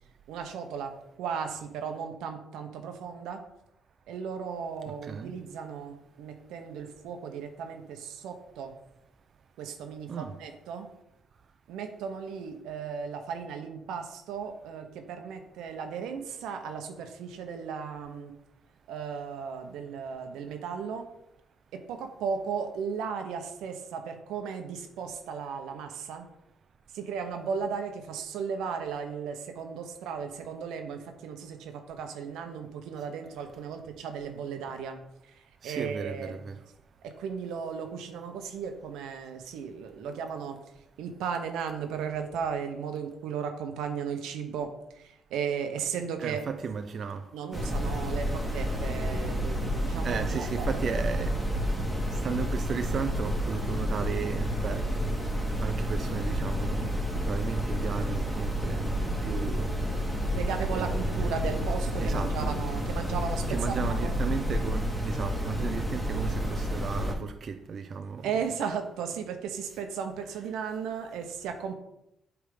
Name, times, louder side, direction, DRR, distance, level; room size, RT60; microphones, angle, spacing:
voice 1, 0.3-3.4 4.1-8.8 9.6-10.9 11.7-18.3 18.9-21.1 21.7-26.3 26.9-36.4 37.0-40.6 41.0-46.4 47.3-50.8 60.3-64.2 68.2-71.8, right 6 dB, 90° right, 1.0 m, -36 dB
voice 2, 4.9-5.4 10.1-10.4 35.6-36.6 46.2-47.3 48.6-48.8 50.0-51.4 52.1-54.9 55.6-58.9 59.2-59.7 60.8-61.3 62.0-62.6 63.5-68.3, right 6 dB, 50° right, 0.5 m, -35 dB
sound 1, 47.5-67.1, equal, ahead, 1.8 m, -30 dB
8.2 x 3.6 x 5.2 m
cardioid pair, 90°, 0 cm